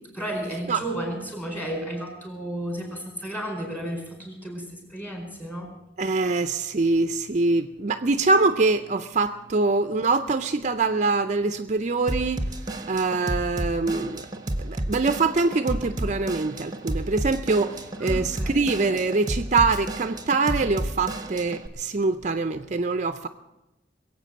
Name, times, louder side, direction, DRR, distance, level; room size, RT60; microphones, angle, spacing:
voice 1, 0.1-5.7 18.0-18.5, right 1 dB, 10° left, 4.4 m, -33 dB
voice 2, 6.0-14.3 14.6-23.3, right 3 dB, 40° right, 0.5 m, -24 dB
Drum kit / Drum, 12.1-21.7, right 1 dB, 20° right, 0.9 m, -31 dB
21.5 x 8.1 x 7.7 m
head